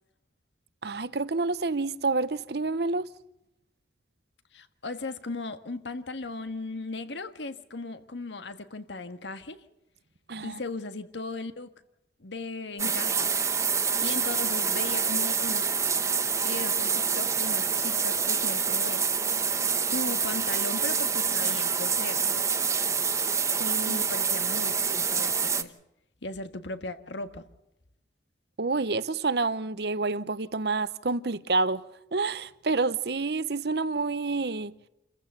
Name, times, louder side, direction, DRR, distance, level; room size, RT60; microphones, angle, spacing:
voice 1, 0.8-3.1 10.3-10.6 23.6-24.0 28.6-31.8 32.1-34.7, right 3 dB, 60° right, 0.8 m, -28 dB
voice 2, 4.5-9.6 10.4-11.7 12.2-13.3 14.0-15.7 16.4-19.1 19.8-22.2 23.8-25.7 26.2-27.5, left 3 dB, 80° left, 1.6 m, -37 dB
sound 1, 12.8-25.6, right 6 dB, 15° right, 0.9 m, -27 dB
28.5 x 15.0 x 6.8 m
head